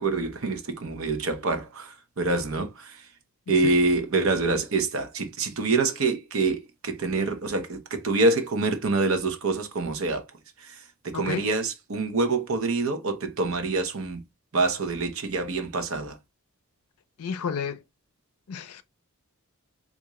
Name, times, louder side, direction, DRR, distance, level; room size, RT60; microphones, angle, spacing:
voice 1, 0.0-3.1 3.5-10.2 10.6-14.2 14.5-16.2, right 3 dB, 65° right, 0.8 m, -26 dB
voice 2, 11.1-11.5 17.2-17.8 18.5-18.8, left 6 dB, 90° left, 0.4 m, -31 dB
3.6 x 2.6 x 3.0 m
head